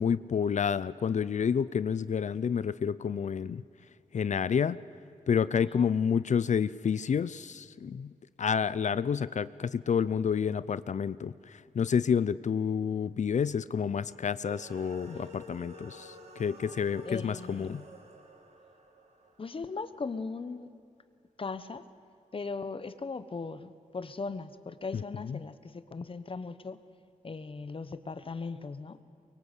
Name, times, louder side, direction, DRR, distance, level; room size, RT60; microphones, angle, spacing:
voice 1, 0.0-3.6 4.1-4.8 5.3-8.1 8.4-17.8 24.9-25.4, left 7 dB, 55° left, 17 dB, 0.5 m, -29 dB
sound 1, 14.4-19.9, right 1 dB, 50° right, 2.6 m, -50 dB
voice 2, 17.0-17.8 19.4-20.7 21.4-21.8 22.3-26.8 27.2-29.0, left 4 dB, 40° left, 12 dB, 1.2 m, -38 dB
24.0 x 22.5 x 8.3 m, 2.5 s
wide cardioid pair, 110°, 14 cm